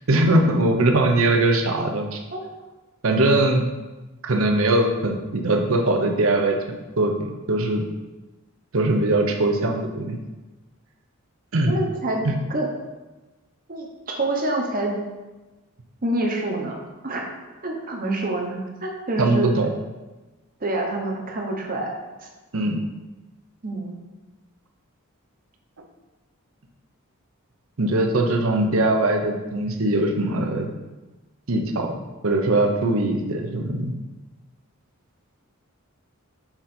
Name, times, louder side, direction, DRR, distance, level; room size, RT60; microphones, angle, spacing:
voice 1, 0.1-2.2 3.0-3.7 4.2-6.6 7.0-7.9 8.7-10.2 11.5-11.7 19.2-19.7 22.5-22.8 27.8-30.7 31.5-31.9 32.2-33.9, right 2 dB, 65° right, 3 dB, 0.7 m, -21 dB
voice 2, 11.7-12.7 13.7-15.0 16.0-16.7 17.0-17.3 17.6-19.6 20.6-21.9 22.2-22.3 23.6-24.0, right 2 dB, 40° right, 0 dB, 0.9 m, -27 dB
5.9 x 3.8 x 4.3 m, 1.1 s
head